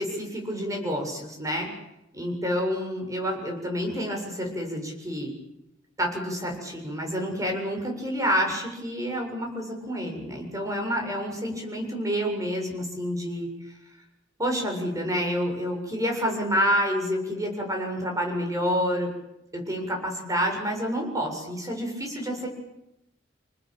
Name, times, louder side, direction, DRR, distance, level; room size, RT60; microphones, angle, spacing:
voice 1, 0.0-1.7 2.1-5.3 6.0-13.5 14.4-19.1 19.5-22.5, equal, 15° right, 1 dB, 7.5 m, -28 dB
28.0 x 20.0 x 9.1 m, 0.87 s
head